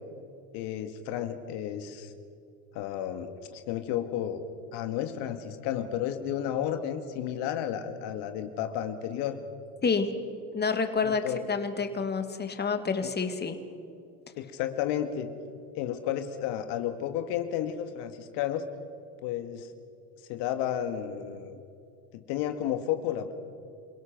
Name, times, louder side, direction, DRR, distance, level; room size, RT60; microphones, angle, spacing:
voice 1, 0.5-2.1 2.7-4.4 4.7-9.4 11.0-11.5 13.0-13.1 14.4-15.3 15.8-18.7 19.2-19.7 20.3-21.6 22.1-23.3, left 10 dB, 60° left, 8 dB, 1.8 m, -32 dB
voice 2, 10.5-13.6, left 5 dB, 20° left, 8 dB, 2.1 m, -28 dB
28.0 x 17.5 x 6.0 m, 2.5 s
supercardioid pair, 100°, 47 cm